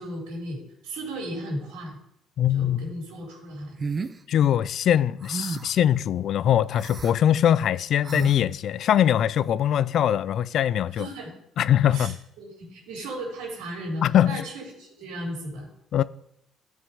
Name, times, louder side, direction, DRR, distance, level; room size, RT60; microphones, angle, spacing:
voice 1, 0.0-2.0 2.5-3.8 10.9-11.3 11.9-15.7, right 1 dB, 90° right, 3.6 m, -35 dB
voice 2, 2.4-2.9 4.3-11.1 11.6-12.2 14.0-14.4 15.9-16.0, left 10 dB, 65° left, 0.4 m, -22 dB
sound 1, 3.8-4.2 5.2-5.8 6.7-7.1 8.0-8.4, right 4 dB, 35° right, 0.7 m, -32 dB
13.0 x 5.3 x 5.0 m
supercardioid pair, 80°, 0 cm